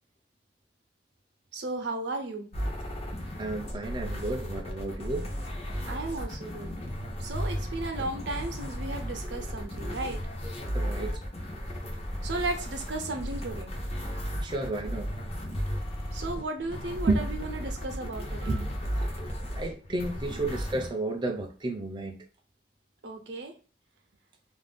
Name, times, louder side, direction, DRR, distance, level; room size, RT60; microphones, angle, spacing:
voice 1, 1.5-2.5 5.8-6.7 7.2-10.2 12.2-13.7 16.1-18.6 19.4-19.5 20.3-20.4 23.0-23.5, right 2 dB, 80° right, 0.6 m, -35 dB
sound 1, 2.5-20.9, equal, 35° left, 0.6 m, -35 dB
voice 2, 3.4-5.3 10.7-11.2 14.4-15.1 17.1-17.3 18.5-18.7 19.2-22.2, right 2 dB, 25° right, 0.4 m, -32 dB
2.5 x 2.2 x 3.4 m
head